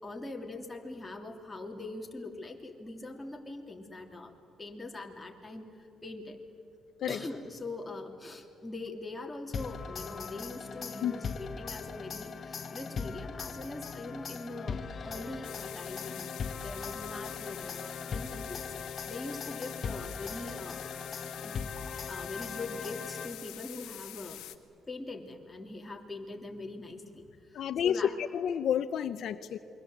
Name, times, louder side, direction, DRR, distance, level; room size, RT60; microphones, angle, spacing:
voice 1, 0.0-6.4 7.1-16.4 16.6-20.8 21.4-21.6 22.1-24.4 24.9-28.1, left 2 dB, 15° left, 1 dB, 3.1 m, -42 dB
sound 1, 9.5-23.7, left 5 dB, 45° left, 1.1 m, -40 dB
sound 2, 15.4-24.6, left 13 dB, 90° left, 1.3 m, -46 dB
voice 2, 27.5-29.6, left 9 dB, 70° left, 10 dB, 0.7 m, -30 dB
28.0 x 23.0 x 7.9 m, 2.5 s
cardioid pair, 90°, 0 cm